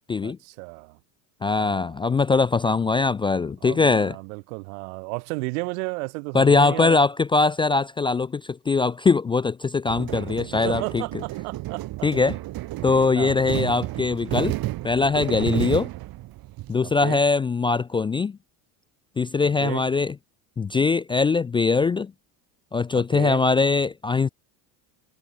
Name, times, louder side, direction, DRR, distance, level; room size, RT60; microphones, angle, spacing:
voice 1, 0.2-1.0 1.6-1.9 3.6-7.0 10.6-12.1 13.2-13.4 16.8-17.2 19.6-19.8 22.9-23.4, right 30 dB, 85° right, 3.3 m, -33 dB
voice 2, 1.4-4.2 6.3-11.0 12.0-12.4 12.8-14.6 14.8-15.9 16.7-18.4 19.2-20.1 20.6-22.1 22.7-24.3, left 4 dB, 15° left, 0.3 m, -21 dB
sound 1, 9.9-16.7, right 17 dB, 55° right, 7.3 m, -31 dB
cardioid pair, 130°, 41 cm